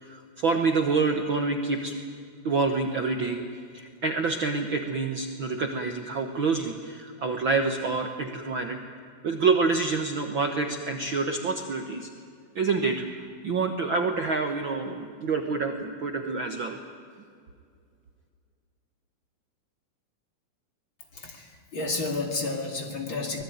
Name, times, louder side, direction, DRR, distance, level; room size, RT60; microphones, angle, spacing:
voice 1, 0.0-2.0 2.4-3.4 3.7-8.8 9.2-12.1 12.5-13.0 13.4-16.8, right 4 dB, 50° right, 5 dB, 1.5 m, -27 dB
voice 2, 21.1-23.4, left 3 dB, 40° left, 3 dB, 2.8 m, -31 dB
24.5 x 20.0 x 9.3 m, 2.3 s
omnidirectional pair, 3.7 m